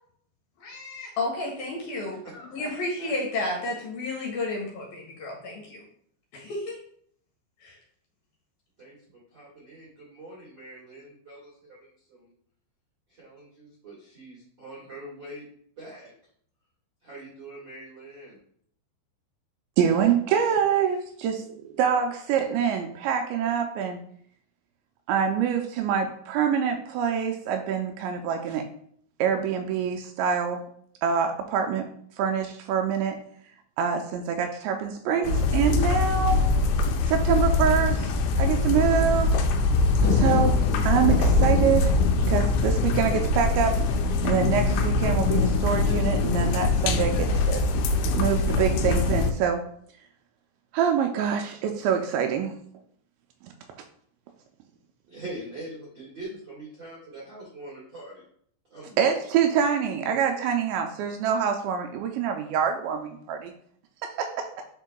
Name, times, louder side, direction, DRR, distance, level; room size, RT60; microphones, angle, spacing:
voice 1, 0.6-5.8 6.3-6.8 7.6-7.7, left 2 dB, 65° left, -2 dB, 2.6 m, -32 dB
voice 2, 2.2-2.7 3.0-3.1 8.8-11.8 12.1-12.3 13.1-15.4 15.8-16.1 17.0-18.4 55.1-58.2 58.7-59.1, right 1 dB, 60° right, -7 dB, 1.1 m, -43 dB
voice 3, 19.8-24.0 25.1-28.7 29.2-30.6 31.0-31.9 32.2-33.2 33.8-36.6 37.1-39.4 40.0-43.8 44.2-47.6 48.2-49.6 50.7-52.6 59.0-63.5 64.0-64.5, right 7 dB, 85° right, 4 dB, 2.6 m, -25 dB
sound 1, 35.3-49.3, left 3 dB, 90° left, 3.0 m, -23 dB
10.0 x 4.4 x 2.2 m, 0.63 s
omnidirectional pair, 5.4 m